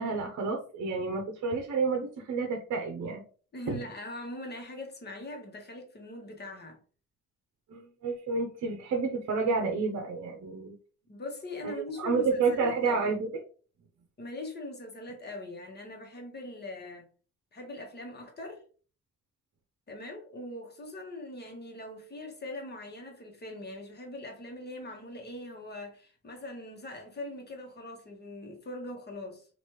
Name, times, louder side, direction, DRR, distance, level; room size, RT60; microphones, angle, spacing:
voice 1, 0.0-3.2 3.7-3.8 7.7-10.8 11.6-11.7 12.0-13.2, right 4 dB, 60° right, 0.7 m, -30 dB
voice 2, 3.5-6.8 11.1-13.1 14.2-17.1 17.5-18.6 19.9-29.5, left 1 dB, 35° left, 1.2 m, -41 dB
3.1 x 2.5 x 3.0 m
cardioid pair, 90°, 30 cm